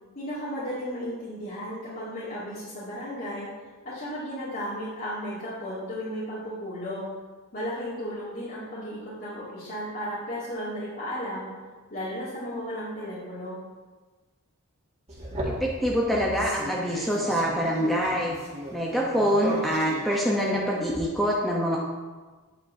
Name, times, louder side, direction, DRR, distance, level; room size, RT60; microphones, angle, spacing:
voice 1, 0.1-3.5 3.8-7.1 7.5-11.5 11.9-13.6, equal, 45° left, -12 dB, 2.5 m, -34 dB
sound 1, 15.1-21.0, right 1 dB, 30° right, 2.0 m, -36 dB
voice 2, 15.6-18.4 18.7-21.8, equal, ahead, -4 dB, 0.8 m, -25 dB
9.1 x 8.9 x 2.8 m, 1.3 s
head